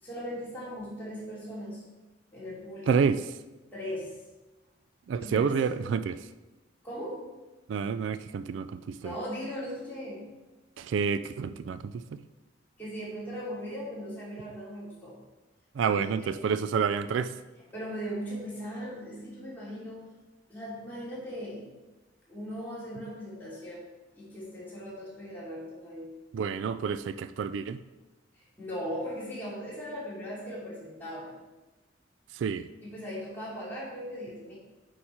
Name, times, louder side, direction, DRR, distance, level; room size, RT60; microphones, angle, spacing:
voice 1, 0.0-1.8 2.3-2.9 3.7-4.2 5.2-5.8 6.8-7.2 9.0-10.2 12.8-15.1 15.8-16.4 17.7-20.1 20.5-21.6 22.3-23.8 24.1-26.1 28.3-31.3 32.8-34.6, equal, 10° left, -8 dB, 2.9 m, -38 dB
voice 2, 2.9-3.2 5.1-6.1 7.7-9.1 10.8-12.2 15.8-17.3 26.3-27.8 32.3-32.7, right 6 dB, 75° right, 13 dB, 0.3 m, -29 dB
8.6 x 4.9 x 4.4 m, 1.1 s
head